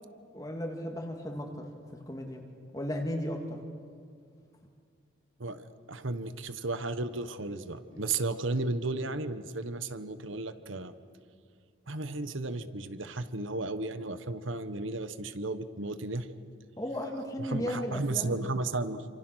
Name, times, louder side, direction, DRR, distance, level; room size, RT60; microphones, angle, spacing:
voice 1, 0.3-2.4 2.7-3.6 7.9-8.0 16.8-18.6, equal, 15° left, 2 dB, 2.3 m, -35 dB
voice 2, 5.4-10.9 11.9-16.3 17.4-19.1, right 3 dB, 75° right, 12 dB, 1.3 m, -34 dB
29.0 x 26.5 x 6.4 m, 2.2 s
head